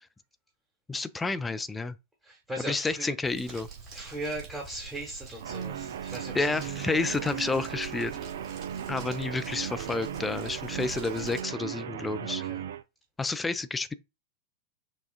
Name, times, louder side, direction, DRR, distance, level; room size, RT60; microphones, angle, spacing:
voice 1, 0.9-2.0 2.6-3.7 6.3-8.2 8.9-12.4 13.2-13.9, left 3 dB, 10° left, 0.4 m, -30 dB
voice 2, 2.2-3.1 3.9-6.6 12.4-12.6, right 1 dB, 15° right, 1.3 m, -38 dB
Crumpling crinkling, 3.2-11.4, right 5 dB, 35° right, 2.3 m, -46 dB
Guitar, 5.4-12.8, right 9 dB, 60° right, 0.3 m, -37 dB
6.0 x 2.3 x 2.4 m
figure-of-eight pair, 90°, 0 cm